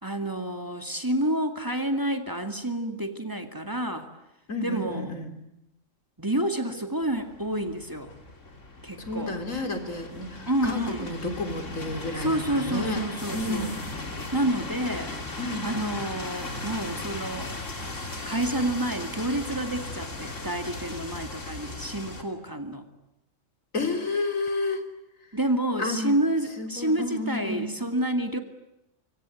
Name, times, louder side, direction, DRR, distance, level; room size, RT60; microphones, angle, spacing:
voice 1, 0.0-4.1 4.6-5.1 6.2-8.1 8.8-9.4 10.5-11.1 12.2-13.7 14.3-15.2 15.6-17.5 18.2-22.8 25.3-28.4, right 1 dB, 15° right, 6 dB, 2.3 m, -29 dB
voice 2, 4.5-5.3 9.0-13.0 13.3-13.8 15.4-15.7 23.7-24.8 25.8-26.2 26.6-27.7, left 2 dB, 90° left, 6 dB, 3.7 m, -31 dB
sound 1, 7.0-22.2, left 2 dB, 70° left, 3.5 m, -37 dB
25.5 x 25.0 x 9.3 m, 0.87 s
omnidirectional pair, 1.3 m